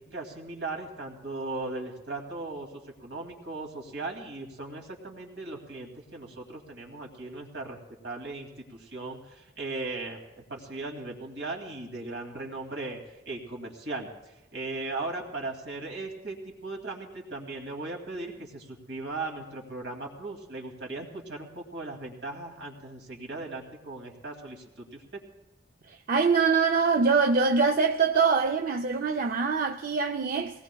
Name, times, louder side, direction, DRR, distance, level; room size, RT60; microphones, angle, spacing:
voice 1, 0.0-2.7 3.0-10.2 10.5-13.0 13.3-14.1 14.5-16.4 16.6-25.0, right 2 dB, 80° right, 2.3 m, -37 dB
voice 2, 26.1-30.6, right 5 dB, 50° right, 0.4 m, -24 dB
22.5 x 18.5 x 2.3 m
head